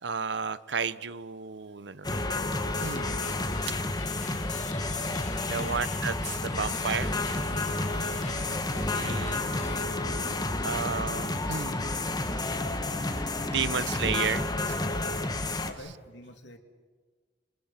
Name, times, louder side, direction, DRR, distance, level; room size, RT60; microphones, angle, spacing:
voice 1, 0.0-3.1 5.5-7.1 8.2-8.7 8.9-9.4 10.6-11.8 13.4-14.9, right 6 dB, 75° right, 16 dB, 0.9 m, -33 dB
sound 1, 2.0-15.7, left 2 dB, 25° left, 1.7 m, -31 dB
sound 2, 2.7-9.9, left 3 dB, 40° left, 0.8 m, -42 dB
voice 2, 8.7-9.2 13.4-13.7 15.6-16.6, left 2 dB, 85° left, 5 dB, 2.9 m, -47 dB
sound 3, 8.7-14.1, equal, 25° right, 3.2 m, -43 dB
29.0 x 27.5 x 6.0 m, 1.4 s
head